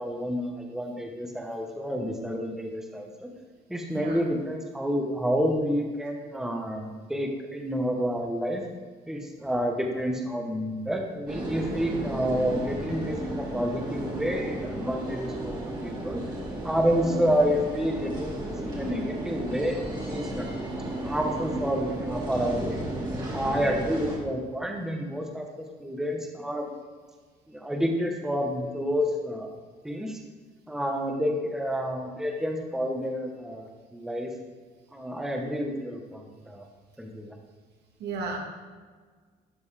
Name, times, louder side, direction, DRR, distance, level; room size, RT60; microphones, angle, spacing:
voice 1, 0.0-3.3 3.7-8.6 9.1-16.2 16.6-19.8 20.1-20.5 21.0-22.9 23.3-26.7 27.5-29.5 29.8-30.2 30.7-34.3 34.9-36.6 37.0-37.3, equal, 5° right, 1 dB, 1.0 m, -29 dB
voice 2, 3.9-4.2 38.0-38.4, right 4 dB, 75° right, 0 dB, 1.7 m, -33 dB
sound 1, 11.3-24.2, right 1 dB, 25° right, 2.0 m, -34 dB
12.0 x 5.3 x 3.3 m, 1.5 s
cardioid pair, 110°, 17 cm